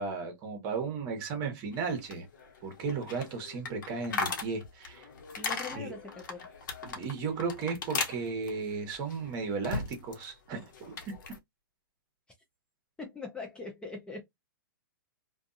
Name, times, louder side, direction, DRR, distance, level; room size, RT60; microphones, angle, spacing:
voice 1, 0.0-2.3 2.6-5.1 5.7-5.9 6.8-11.1, right 4 dB, 35° right, 1.1 m, -35 dB
sound 1, 1.7-10.3 10.5-11.4, left 4 dB, 60° left, 0.9 m, -38 dB
voice 2, 5.4-6.5 13.0-14.2, left 3 dB, 10° left, 0.5 m, -42 dB
2.5 x 2.3 x 2.5 m
hypercardioid pair, 130°, 12 cm